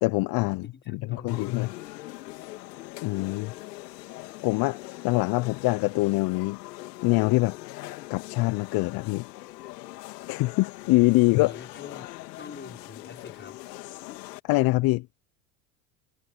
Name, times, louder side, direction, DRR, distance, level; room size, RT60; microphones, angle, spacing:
voice 1, 0.0-1.7 3.0-3.5 4.4-4.8 5.0-6.6 7.0-7.6 8.1-9.3 10.3-11.5 14.4-15.1, left 22 dB, 45° left, 0.8 m, -24 dB
voice 2, 0.6-1.7 11.0-13.6, left 5 dB, 20° left, 5.1 m, -45 dB
sound 1, 1.3-14.4, left 19 dB, 75° left, 2.4 m, -42 dB
hypercardioid pair, 80°, 49 cm